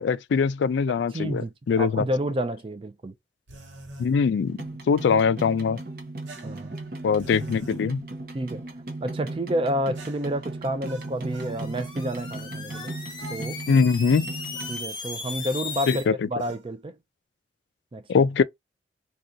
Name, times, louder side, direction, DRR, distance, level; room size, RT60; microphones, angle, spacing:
voice 1, 0.0-2.0 4.0-4.6 4.9-5.8 7.0-8.0 13.7-14.3 15.9-16.1 18.1-18.4, left 5 dB, 75° left, 0.3 m, -22 dB
voice 2, 0.9-3.1 6.4-6.7 8.3-8.6 9.0-12.9 13.3-13.6 14.7-16.9 17.9-18.3, equal, 30° right, 0.4 m, -30 dB
sound 1, 3.5-4.1 6.3-7.8 9.9-11.6 12.7-13.4 14.5-14.8 16.4-16.7, right 1 dB, 90° right, 0.8 m, -45 dB
sound 2, 4.4-14.8, right 2 dB, 50° right, 0.7 m, -37 dB
sound 3, 11.2-16.1, left 4 dB, 25° left, 0.9 m, -37 dB
2.7 x 2.3 x 3.7 m
head